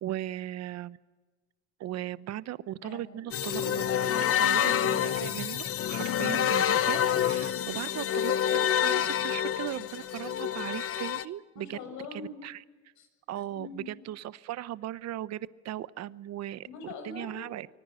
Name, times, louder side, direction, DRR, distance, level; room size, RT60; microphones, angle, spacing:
voice 1, 0.0-1.0 1.8-3.8 4.4-11.8 12.1-12.6 13.3-16.7 17.0-17.7, right 13 dB, 65° right, 16 dB, 0.9 m, -37 dB
voice 2, 2.8-3.3 11.6-12.4 13.0-13.1 13.5-13.9 16.6-17.6, left 4 dB, 80° left, 6 dB, 7.1 m, -43 dB
sound 1, 3.3-11.2, left 10 dB, 50° left, 1.1 m, -27 dB
25.0 x 18.5 x 7.7 m, 1.3 s
cardioid pair, 105°, 29 cm